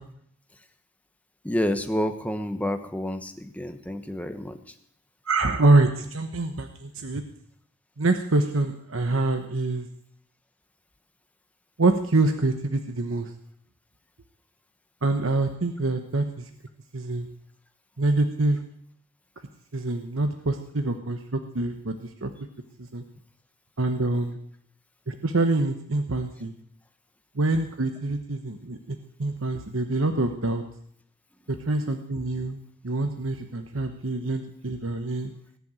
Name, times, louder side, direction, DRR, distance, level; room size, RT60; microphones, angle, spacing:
voice 1, 1.4-4.6, left 1 dB, 5° left, 7 dB, 1.1 m, -29 dB
voice 2, 5.2-7.2 8.0-9.9 11.8-13.3 15.0-16.5 16.9-17.3 18.0-18.6 19.7-22.3 22.8-23.0 23.8-24.4 25.1-26.5 27.3-30.6 31.7-35.3, right 2 dB, 70° right, 6 dB, 1.1 m, -25 dB
19.0 x 7.0 x 9.0 m, 0.67 s
head